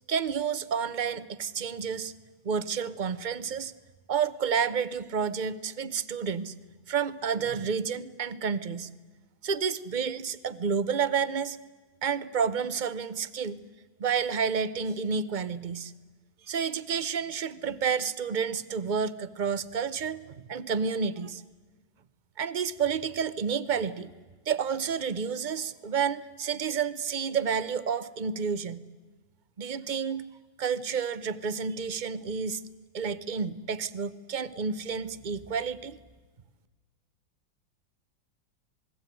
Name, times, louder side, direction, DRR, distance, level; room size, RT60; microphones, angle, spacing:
voice 1, 0.1-2.1 2.4-3.7 4.1-6.5 6.9-8.9 9.4-11.6 12.0-13.6 14.0-15.9 16.5-21.4 22.4-24.1 24.5-28.8 29.6-30.2 30.6-32.6 32.9-36.0, right 6 dB, 40° right, 15 dB, 0.7 m, -30 dB
27.5 x 21.0 x 9.3 m, 1.3 s
omnidirectional pair, 2.1 m